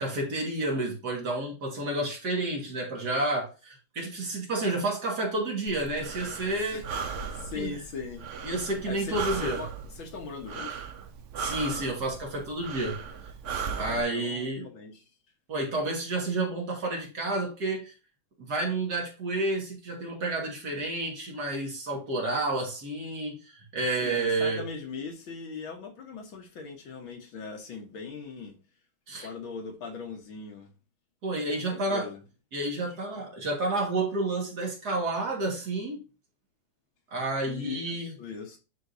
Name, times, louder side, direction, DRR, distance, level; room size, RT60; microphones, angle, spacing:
voice 1, 0.0-6.8 7.6-7.8 8.4-9.6 11.4-13.0 13.8-14.7 15.5-17.9 18.4-24.7 29.1-29.3 31.2-32.1 32.5-36.0 37.1-38.1, right 2 dB, 50° right, 2.2 m, -30 dB
Breathing, 5.7-14.0, right 6 dB, 80° right, 0.6 m, -37 dB
voice 2, 7.3-8.3 8.8-10.9 13.7-15.1 24.0-28.5 29.2-30.7 31.6-32.2 32.8-33.2 37.5-38.6, left 5 dB, 70° left, 2.0 m, -40 dB
10.5 x 3.8 x 2.7 m
omnidirectional pair, 2.3 m